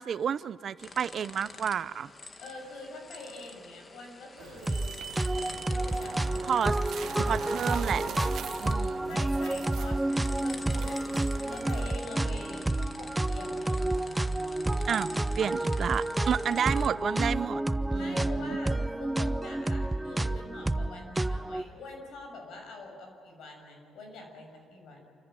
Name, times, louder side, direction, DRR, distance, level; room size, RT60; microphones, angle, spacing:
voice 1, 0.0-2.1 6.4-6.8 7.2-8.0 8.6-9.2 14.9-15.1 15.4-17.6 17.9-18.6, right 8 dB, 55° right, 0.6 m, -30 dB
sound 1, 0.8-16.9, left 3 dB, 35° left, 1.5 m, -47 dB
voice 2, 2.4-5.0 5.3-7.5 9.1-13.9 17.9-25.0, left 2 dB, 75° left, 6.6 m, -45 dB
sound 2, 4.4-11.9, right 8 dB, 75° right, 1.2 m, -42 dB
sound 3, 4.7-4.9 5.2-21.6, right 1 dB, 10° right, 0.6 m, -30 dB
28.0 x 14.5 x 9.0 m
cardioid pair, 90°, 0 cm